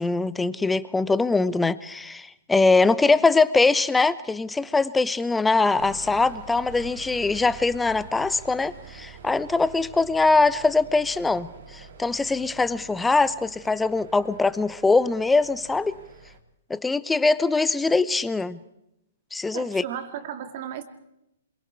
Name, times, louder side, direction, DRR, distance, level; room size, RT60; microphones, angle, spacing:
voice 1, 0.0-16.0 16.7-18.6 19.3-19.8, left 3 dB, 10° left, 16 dB, 0.8 m, -22 dB
sound 1, 5.8-16.4, right 5 dB, 70° right, 3.2 m, -45 dB
voice 2, 19.5-20.8, right 9 dB, 50° right, 8 dB, 2.4 m, -34 dB
27.0 x 23.0 x 4.7 m, 0.83 s
hypercardioid pair, 130°, 0 cm